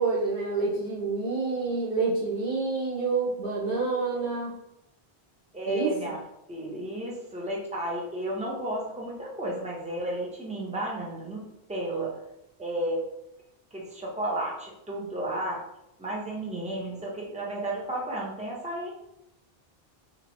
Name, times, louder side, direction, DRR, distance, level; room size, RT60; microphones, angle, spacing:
voice 1, 0.0-4.6 5.7-6.1, right 4 dB, 55° right, -8 dB, 0.9 m, -28 dB
voice 2, 5.5-6.2 6.5-12.2 12.6-13.0 13.7-15.6 16.0-18.9, right 1 dB, 10° right, -3 dB, 0.5 m, -33 dB
3.0 x 2.9 x 2.6 m, 0.83 s
omnidirectional pair, 1.0 m